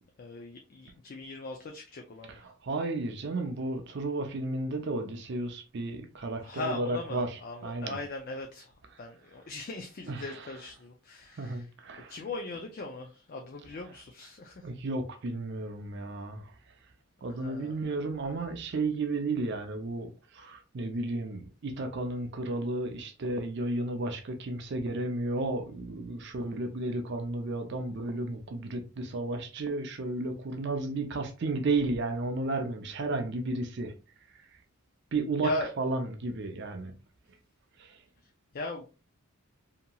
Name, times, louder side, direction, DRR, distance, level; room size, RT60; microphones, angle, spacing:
voice 1, 0.2-2.5 6.4-8.7 9.0-11.7 12.1-14.7 17.3-17.7 35.4-35.7 38.5-38.9, left 2 dB, 45° left, 0.4 m, -39 dB
voice 2, 2.3-8.0 10.1-10.5 11.4-12.1 14.6-16.5 17.2-33.9 35.1-35.5 35.8-37.0 37.8-37.9, right 2 dB, 55° right, 0.5 m, -33 dB
2.8 x 2.7 x 2.2 m
head